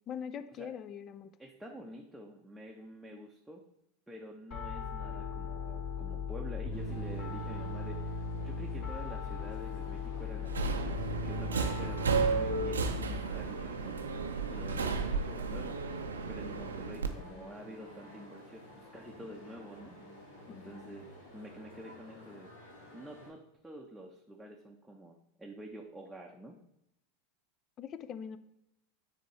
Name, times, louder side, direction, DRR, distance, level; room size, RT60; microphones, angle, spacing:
voice 1, 0.1-1.3 20.5-20.9 27.8-28.4, left 8 dB, 35° left, 12 dB, 0.4 m, -42 dB
voice 2, 1.4-3.6 4.1-8.2 8.4-10.8 11.1-14.0 14.5-15.8 16.3-20.0 20.5-21.1 21.3-22.5 22.9-26.6, right 1 dB, 5° right, -1 dB, 0.7 m, -48 dB
Piano, 4.5-13.1, left 4 dB, 50° left, 2.5 m, -38 dB
sound 1, 6.7-23.3, equal, 75° left, 1.6 m, -52 dB
Subway metro underground, 10.4-17.1, right 4 dB, 80° right, 0.5 m, -33 dB
9.1 x 3.5 x 3.2 m, 0.80 s
figure-of-eight pair, 85°, 0 cm